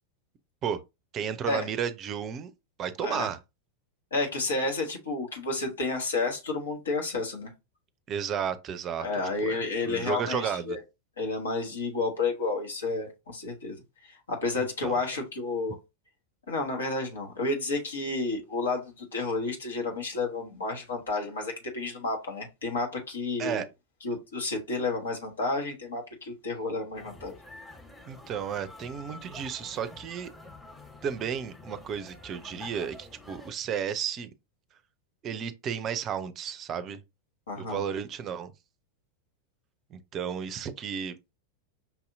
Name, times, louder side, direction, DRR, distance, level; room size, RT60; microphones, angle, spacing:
voice 1, 1.1-2.5 2.8-3.4 8.1-9.1 9.4-10.8 14.8-15.0 23.4-23.7 28.1-30.3 31.0-34.3 35.2-37.0 37.6-38.5 39.9-41.2, right 8 dB, 30° right, 0.5 m, -33 dB
voice 2, 3.0-3.3 4.1-7.5 9.0-10.8 11.2-15.7 16.5-23.6 24.0-27.4 37.5-37.8, left 3 dB, 70° left, 1.3 m, -31 dB
sound 1, 26.9-33.5, left 2 dB, 10° left, 1.2 m, -48 dB
5.7 x 2.7 x 2.6 m
figure-of-eight pair, 90°, 0 cm